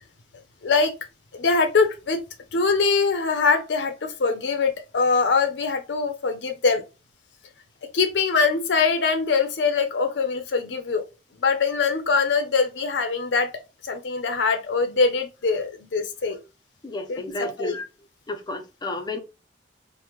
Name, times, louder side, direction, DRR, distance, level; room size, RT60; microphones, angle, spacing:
voice 1, 0.6-0.9 1.3-2.2 2.5-6.8 7.9-11.0 11.4-13.5 13.8-16.4 17.1-17.7, left 4 dB, 80° left, 0.5 m, -23 dB
voice 2, 16.8-17.9 18.3-19.2, left 2 dB, 25° left, 0.5 m, -32 dB
3.0 x 2.1 x 3.4 m
head